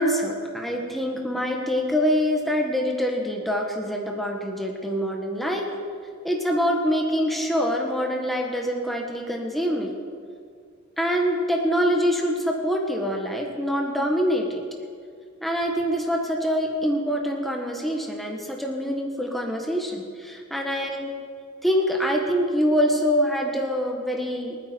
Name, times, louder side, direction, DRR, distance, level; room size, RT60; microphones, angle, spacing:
voice 1, 0.0-5.7 6.2-9.9 11.0-14.6 15.4-21.1 21.6-24.6, equal, ahead, 0 dB, 1.5 m, -25 dB
27.5 x 9.6 x 4.6 m, 2.1 s
head